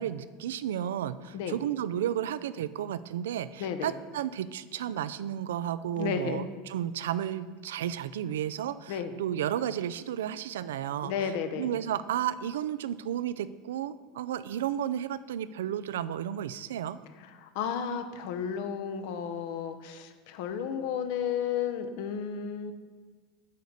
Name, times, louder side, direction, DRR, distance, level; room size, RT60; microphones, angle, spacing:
voice 1, 0.0-11.1 11.6-17.0, right 10 dB, 90° right, 15 dB, 0.3 m, -33 dB
voice 2, 3.6-3.9 6.0-6.5 8.9-9.1 11.0-11.8 17.2-22.7, left 7 dB, 70° left, 9 dB, 0.8 m, -33 dB
9.3 x 4.0 x 6.6 m, 1.4 s
supercardioid pair, 105°, 0 cm